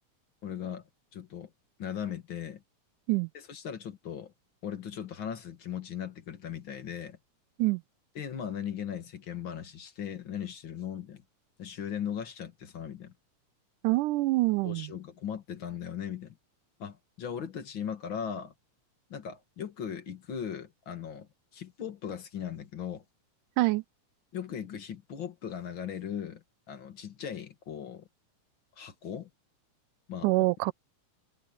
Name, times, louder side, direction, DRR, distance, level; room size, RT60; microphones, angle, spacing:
voice 1, 0.4-0.8 1.1-1.5 1.8-2.6 3.3-4.3 4.6-7.2 8.2-11.2 11.6-13.1 14.6-16.4 16.8-18.5 19.1-23.0 24.3-28.1 28.8-29.3 30.1-30.3, left 8 dB, 45° left, 2.1 m, -38 dB
voice 2, 13.8-14.9 23.6-23.8 30.2-30.7, right 20 dB, 85° right, 2.1 m, -25 dB
omnidirectional pair, 3.6 m